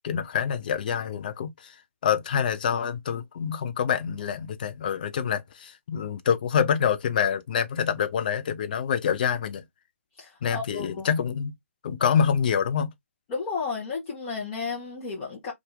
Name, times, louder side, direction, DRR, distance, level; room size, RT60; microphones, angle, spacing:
voice 1, 0.0-1.7 2.0-9.6 10.4-11.5 11.8-12.9, left 7 dB, 40° left, 0.6 m, -26 dB
voice 2, 10.2-11.1 13.3-15.5, left 4 dB, 25° left, 1.0 m, -33 dB
2.7 x 2.5 x 3.5 m
figure-of-eight pair, 140°, 7 cm